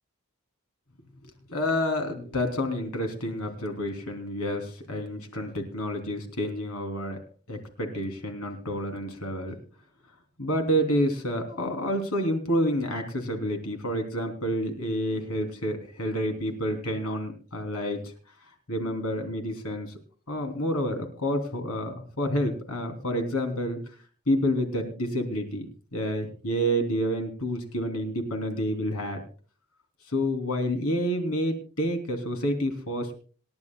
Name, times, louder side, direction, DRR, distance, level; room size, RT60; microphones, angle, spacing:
voice 1, 1.5-7.2 7.5-9.5 10.4-18.0 18.7-19.9 20.3-23.8 24.3-29.2 30.1-33.2, equal, 90° left, 5 dB, 3.2 m, -29 dB
26.5 x 11.0 x 2.3 m, 0.38 s
head